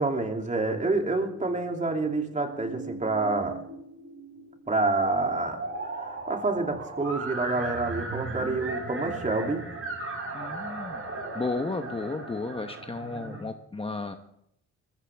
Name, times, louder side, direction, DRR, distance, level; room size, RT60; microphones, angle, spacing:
voice 1, 0.0-3.6 4.7-9.6, right 3 dB, 25° right, 3 dB, 2.8 m, -28 dB
sound 1, 0.7-13.4, right 3 dB, 45° right, 6.8 m, -38 dB
voice 2, 10.3-11.1 11.3-14.1, left 3 dB, 20° left, 6 dB, 1.0 m, -33 dB
21.0 x 14.5 x 3.5 m, 0.77 s
cardioid pair, 90°, 30 cm